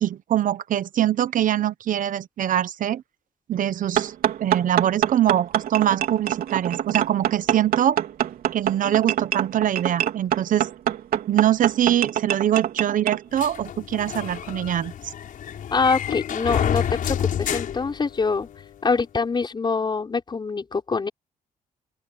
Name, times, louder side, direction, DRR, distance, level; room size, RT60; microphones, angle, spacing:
voice 1, 0.0-3.0 3.5-4.1 4.4-8.0 8.5-10.7 11.3-14.9, right 11 dB, 65° right, 0.9 m, -23 dB
sound 1, 4.0-13.2, right 11 dB, 85° right, 3.6 m, -25 dB
sound 2, 13.4-18.6, left 9 dB, 65° left, 5.3 m, -29 dB
voice 2, 15.7-16.8 17.2-18.5 18.8-21.1, left 4 dB, 30° left, 5.0 m, -24 dB
open air
cardioid pair, 115°, 15 cm